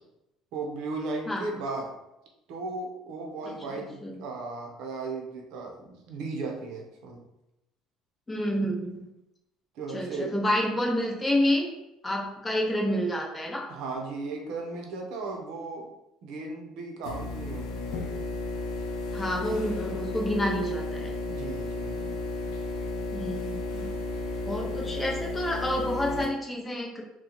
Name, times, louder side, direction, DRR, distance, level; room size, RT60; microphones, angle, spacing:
voice 1, 0.5-1.9 2.5-7.2 9.7-10.4 13.7-15.9 16.2-18.0 21.3-22.2, right 3 dB, 70° right, 1 dB, 0.8 m, -36 dB
voice 2, 3.7-4.2 8.3-9.1 9.9-11.7 12.0-13.7 19.1-21.1 23.1-24.0 24.4-27.0, left 1 dB, 15° left, -1 dB, 0.7 m, -29 dB
sound 1, 17.0-26.2, left 2 dB, 80° left, 0.5 m, -33 dB
2.9 x 2.3 x 3.9 m, 0.89 s
cardioid pair, 130°, 0 cm